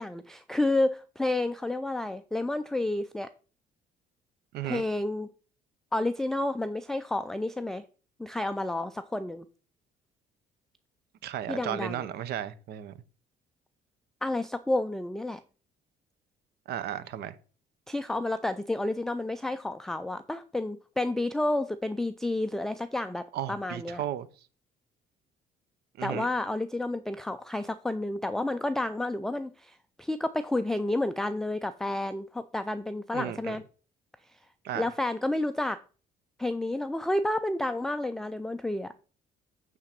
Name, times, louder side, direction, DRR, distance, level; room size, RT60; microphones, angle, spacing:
voice 1, 0.0-3.3 4.6-5.3 5.9-7.8 8.2-9.5 11.5-12.1 14.2-15.4 17.9-24.0 26.0-33.6 34.8-35.8 36.4-38.9, left 2 dB, 5° left, 0.4 m, -30 dB
voice 2, 11.2-12.9 16.7-17.3 23.3-24.3 26.0-26.3 33.1-33.6 34.6-34.9, right 11 dB, 70° right, 0.8 m, -34 dB
9.0 x 3.8 x 5.8 m
cardioid pair, 110°, 17 cm